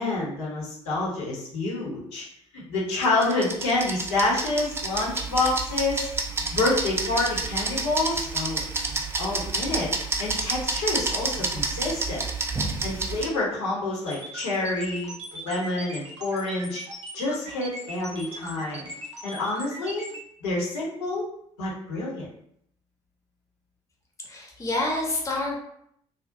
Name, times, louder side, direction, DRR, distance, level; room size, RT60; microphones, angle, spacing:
voice 1, 0.0-2.2 2.5-6.1 6.5-8.6 9.2-12.2 12.6-16.8 17.1-18.9 19.2-20.1 20.4-21.3 21.6-22.3, left 2 dB, 70° left, -5 dB, 0.7 m, -28 dB
Kitchen Timer, 3.0-13.3, right 3 dB, 15° right, 0.3 m, -29 dB
sound 1, 14.1-20.2, right 1 dB, 85° right, 0.4 m, -39 dB
voice 2, 24.3-25.6, left 2 dB, 20° left, -1 dB, 0.7 m, -27 dB
2.4 x 2.0 x 2.5 m, 0.71 s
figure-of-eight pair, 50°, 15 cm